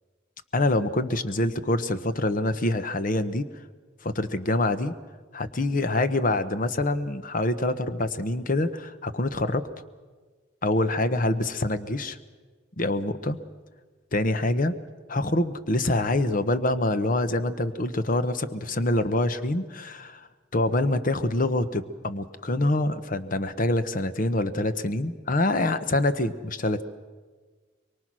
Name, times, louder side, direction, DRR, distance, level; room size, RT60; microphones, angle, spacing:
voice 1, 0.5-3.5 4.0-4.9 5.3-9.7 10.6-12.2 12.8-13.4 14.1-14.7 15.1-26.8, left 2 dB, 50° left, 12 dB, 1.0 m, -25 dB
24.0 x 23.5 x 6.2 m, 1.4 s
head